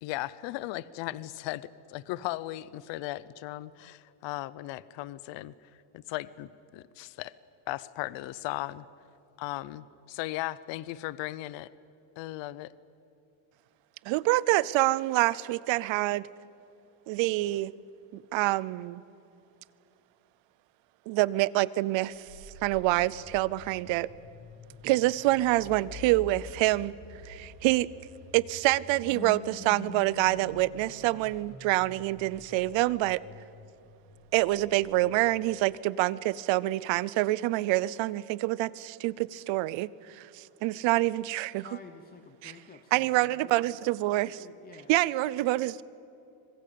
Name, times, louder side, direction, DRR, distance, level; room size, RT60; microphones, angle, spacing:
voice 1, 0.0-5.5 5.9-7.3 7.7-8.8 9.4-11.7 12.2-12.7, left 16 dB, 60° left, 19 dB, 0.8 m, -37 dB
voice 2, 14.1-16.3 17.1-17.7 18.1-19.0 21.1-22.2 22.6-24.1 24.8-26.9 27.2-27.9 28.3-33.2 34.3-41.8 42.4-42.5 42.9-44.5 44.9-45.8, right 18 dB, 65° right, 21 dB, 0.8 m, -26 dB
sound 1, 22.2-35.5, left 3 dB, 80° left, 7.3 m, -48 dB
voice 3, 41.6-43.5 44.4-44.9, left 4 dB, 20° left, 7 dB, 0.8 m, -50 dB
25.5 x 21.5 x 8.6 m, 2.8 s
cardioid pair, 175°, 49 cm